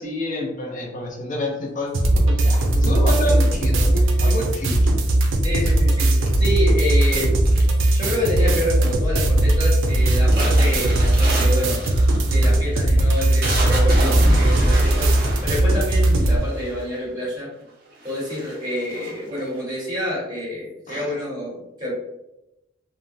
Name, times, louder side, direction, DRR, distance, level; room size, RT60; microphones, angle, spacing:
voice 1, 0.0-2.0 2.3-4.9 20.9-21.1, left 1 dB, 40° left, -1 dB, 0.6 m, -28 dB
sound 1, 1.9-16.4, right 1 dB, 90° right, 0.5 m, -18 dB
voice 2, 5.4-7.3 7.9-11.9 12.2-17.5 18.0-21.9, left 1 dB, 20° right, -8 dB, 1.4 m, -27 dB
sound 2, 5.7-6.7 7.4-8.0 8.3-8.8 9.2-9.5 9.9-16.9 17.6-17.7 18.0-19.6, right 1 dB, 50° right, 0.8 m, -27 dB
3.3 x 2.1 x 2.6 m, 0.90 s
head